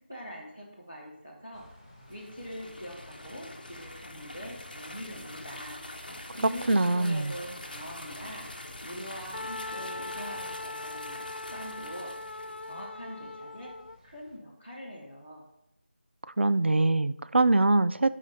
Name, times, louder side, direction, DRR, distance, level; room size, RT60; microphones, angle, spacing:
voice 1, 0.1-1.7 2.1-11.2 11.5-12.1 12.6-13.7 14.0-15.4, equal, 10° right, -8 dB, 0.6 m, -43 dB
sound 1, 1.5-14.4, left 1 dB, 25° left, 1.7 m, -54 dB
sound 2, 2.0-12.8, left 1 dB, 50° left, 1.0 m, -45 dB
voice 2, 6.7-7.3 16.4-18.1, right 2 dB, 80° right, 14 dB, 0.5 m, -23 dB
Wind instrument woodwind instrument, 9.3-14.0, left 2 dB, 80° left, 0.4 m, -40 dB
12.0 x 5.0 x 4.1 m, 0.84 s
figure-of-eight pair, 180°, 6 cm